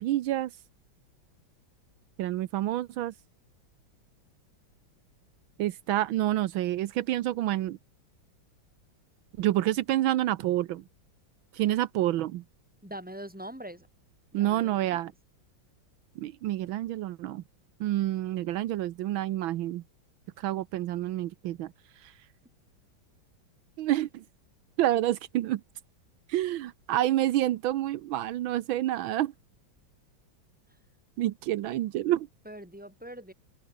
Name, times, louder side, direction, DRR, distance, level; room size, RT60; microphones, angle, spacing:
voice 1, 0.0-0.5 2.2-3.1 5.6-7.8 9.4-10.8 11.5-12.4 14.3-15.1 16.2-17.4 17.8-19.8 20.4-21.7 23.8-24.2 24.8-25.6 26.3-29.3 31.2-32.3, right 14 dB, 80° right, 1.5 m, -28 dB
voice 2, 12.8-13.9 14.3-15.0 32.4-33.3, right 1 dB, 5° right, 4.4 m, -43 dB
omnidirectional pair, 2.2 m